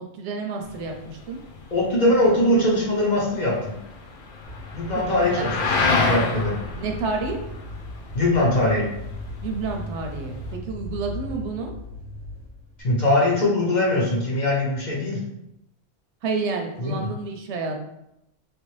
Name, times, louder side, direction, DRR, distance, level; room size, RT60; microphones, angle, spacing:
voice 1, 0.0-1.4 5.0-5.3 6.8-7.4 9.4-11.7 16.2-17.8, right 4 dB, 70° right, 3 dB, 0.8 m, -30 dB
sound 1, 0.6-10.6, left 4 dB, 70° left, 1.0 m, -30 dB
voice 2, 1.7-3.7 4.7-5.5 5.8-6.5 8.1-8.8 12.8-15.2 16.8-17.1, left 1 dB, 45° left, -4 dB, 0.7 m, -21 dB
sound 2, 4.5-12.8, left 1 dB, 5° left, 0.9 m, -37 dB
3.0 x 2.6 x 3.2 m, 0.82 s
omnidirectional pair, 1.3 m